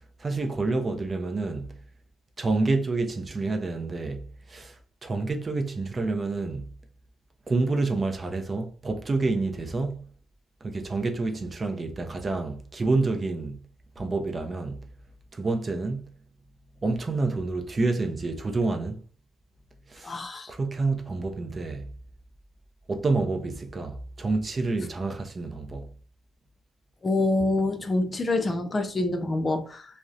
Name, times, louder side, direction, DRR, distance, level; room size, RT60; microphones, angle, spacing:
voice 1, 0.2-1.8 2.4-6.7 7.5-10.1 10.6-13.6 14.0-14.9 15.3-16.1 16.8-19.0 19.9-20.2 20.5-21.9 22.9-25.9, right 3 dB, 30° right, 0.5 m, -28 dB
voice 2, 20.0-20.5 27.0-29.9, left 2 dB, 30° left, 0.4 m, -26 dB
2.5 x 2.1 x 2.3 m
cardioid pair, 90°, 0 cm